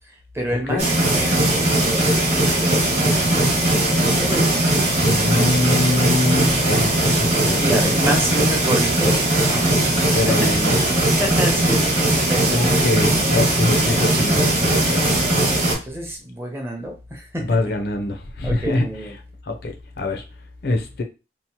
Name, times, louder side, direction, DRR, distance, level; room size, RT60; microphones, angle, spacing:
voice 1, 0.3-3.5 4.1-4.6 7.6-10.4 11.2-11.8 12.2-12.7 15.4-17.5 18.4-19.1, right 1 dB, 15° right, 0.6 m, -28 dB
sound 1, 0.8-15.7, right 1 dB, 35° right, 1.0 m, -19 dB
voice 2, 5.0-7.9 10.1-10.8 12.5-15.3 17.4-19.2 19.4-20.2 20.6-21.0, left 2 dB, 60° left, 0.5 m, -24 dB
2.8 x 2.0 x 2.9 m
head